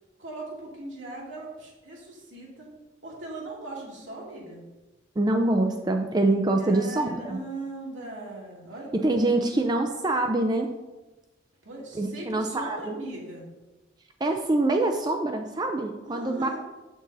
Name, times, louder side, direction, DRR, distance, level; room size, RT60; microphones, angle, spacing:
voice 1, 0.2-2.7 3.0-4.6 6.6-9.4 11.6-13.5 16.0-16.6, right 2 dB, 85° right, -4 dB, 2.6 m, -39 dB
voice 2, 5.2-7.4 9.0-10.7 12.0-12.9 14.2-16.5, right 2 dB, 20° right, 4 dB, 0.5 m, -25 dB
7.8 x 6.1 x 4.0 m, 1.1 s
head